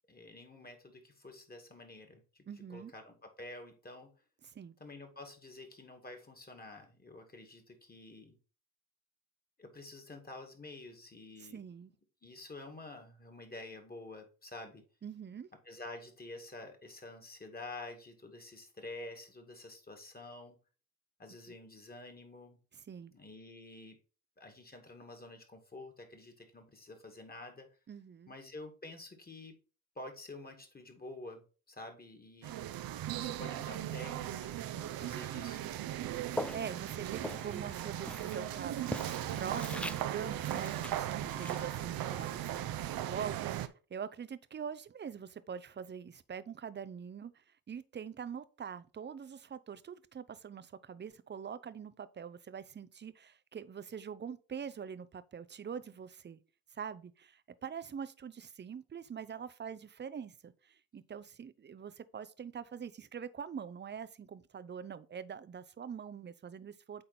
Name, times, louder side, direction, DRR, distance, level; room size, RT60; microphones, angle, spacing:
voice 1, 0.1-2.4 2.7-4.1 4.8-8.4 9.6-11.6 12.2-14.8 15.7-20.6 21.2-22.6 23.1-24.0 24.4-27.7 28.3-29.6 30.0-32.6 33.2-35.7, left 2 dB, 20° left, 2.3 m, -49 dB
voice 2, 2.5-2.9 4.5-4.8 11.4-11.9 15.0-15.5 22.7-23.1 27.9-28.3 36.5-38.8 39.2-56.4 56.7-67.0, right 7 dB, 25° right, 0.7 m, -44 dB
sound 1, 32.4-43.7, right 13 dB, 55° right, 0.8 m, -38 dB
Walk footsteps, 36.3-43.4, left 1 dB, 5° left, 0.4 m, -44 dB
8.7 x 3.8 x 4.2 m
hypercardioid pair, 60°, 42 cm